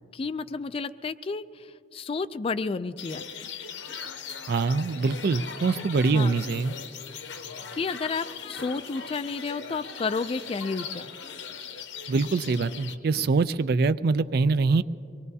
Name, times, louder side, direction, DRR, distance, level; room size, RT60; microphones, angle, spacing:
voice 1, 0.1-3.5 6.1-6.3 7.7-11.1, left 4 dB, 30° left, 13 dB, 0.3 m, -31 dB
sound 1, 3.0-13.0, left 6 dB, 80° left, 0.8 m, -39 dB
voice 2, 4.5-6.7 12.1-14.8, right 4 dB, 55° right, 14 dB, 0.4 m, -24 dB
24.0 x 20.0 x 2.7 m, 2.7 s
head